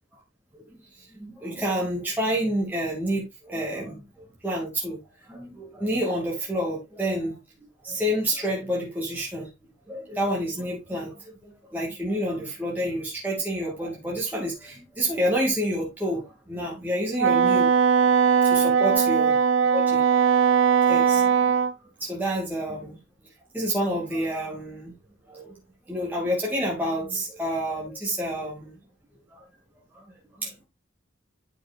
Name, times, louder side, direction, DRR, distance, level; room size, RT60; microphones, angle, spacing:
voice 1, 1.2-4.0 4.4-5.0 5.3-7.4 7.8-9.5 9.9-11.2 11.7-17.7 18.4-19.4 19.7-20.0 20.9-21.5 22.0-23.0 23.5-24.9 25.3-25.5 25.9-28.7 29.3-29.4 30.4-30.5, equal, 10° right, 2.3 m, -28 dB
Wind instrument woodwind instrument, 17.2-21.7, right 6 dB, 80° right, 0.5 m, -20 dB
10.0 x 6.4 x 2.5 m
head